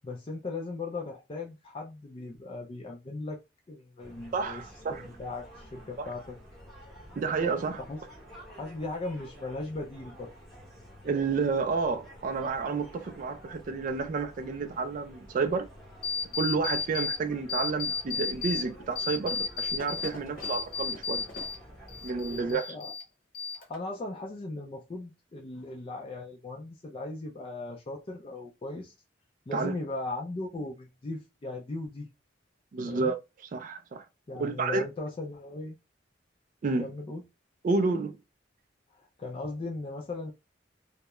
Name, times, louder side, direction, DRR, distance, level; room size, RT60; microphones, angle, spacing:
voice 1, 0.0-3.4 3.7-4.6 4.9-6.2 7.9-8.0 8.5-10.3 22.3-22.9 23.5-28.9 29.5-32.1 32.8-33.1 34.3-35.8 36.8-37.2 39.0-40.3, left 2 dB, 30° left, 0.4 m, -38 dB
sound 1, 4.0-22.6, equal, ahead, 0.8 m, -50 dB
voice 2, 4.3-5.1 6.0-6.1 7.2-7.8 11.0-15.7 16.4-21.2 22.0-22.8 29.5-29.7 32.7-34.0 34.4-34.8 36.6-36.9 37.6-38.2, right 4 dB, 45° right, 0.3 m, -30 dB
sound 2, 16.0-17.2 17.5-18.6 19.0-21.6 21.9-23.0 23.3-24.0, left 5 dB, 50° left, 0.7 m, -33 dB
2.2 x 2.0 x 2.9 m
head